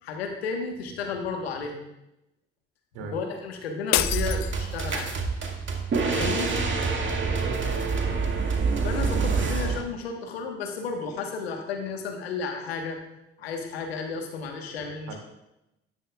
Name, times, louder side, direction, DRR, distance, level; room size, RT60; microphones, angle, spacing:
voice 1, 0.0-1.9 3.0-5.2 6.1-6.5 8.8-13.0 13.4-15.2, left 5 dB, 85° left, 3 dB, 1.3 m, -33 dB
sound 1, 3.9-5.2, left 17 dB, 65° left, 0.5 m, -28 dB
sound 2, 3.9-9.8, right 4 dB, 40° right, 1.9 m, -26 dB
voice 2, 7.3-8.2 15.1-15.2, right 4 dB, 70° right, 1 dB, 2.4 m, -38 dB
12.0 x 10.5 x 2.3 m, 0.88 s
hypercardioid pair, 55°, 30 cm